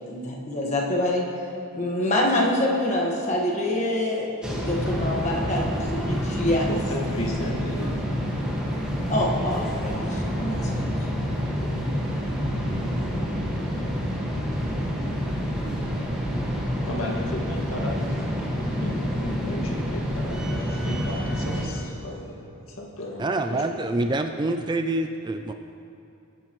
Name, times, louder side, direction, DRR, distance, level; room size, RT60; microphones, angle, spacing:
voice 1, 0.1-1.3 1.7-6.7 9.1-10.8, left 1 dB, 30° left, -2 dB, 1.5 m, -26 dB
sound 1, 4.4-21.7, equal, 5° right, 1.6 m, -28 dB
voice 2, 6.7-8.2 16.8-22.4 22.7-23.6, left 1 dB, 65° left, -1 dB, 1.9 m, -34 dB
voice 3, 23.2-25.5, right 2 dB, 20° right, 6 dB, 0.3 m, -26 dB
20.5 x 10.5 x 3.1 m, 2.7 s
head